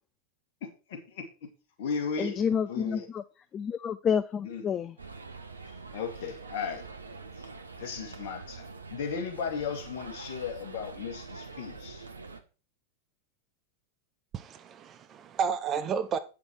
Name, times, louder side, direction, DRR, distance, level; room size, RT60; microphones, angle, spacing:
voice 1, 0.6-1.5 1.8-3.1 4.4-4.6 5.7-6.8 7.4-7.5 7.8-12.1, left 6 dB, 50° left, 2.1 m, -36 dB
voice 2, 2.2-3.2 3.5-4.9, left 7 dB, 25° left, 0.4 m, -29 dB
sound 1, 5.0-12.4, right 4 dB, 75° right, 0.9 m, -45 dB
voice 3, 14.3-16.2, right 6 dB, 30° right, 0.7 m, -31 dB
8.8 x 5.9 x 4.6 m
figure-of-eight pair, 90°, 0 cm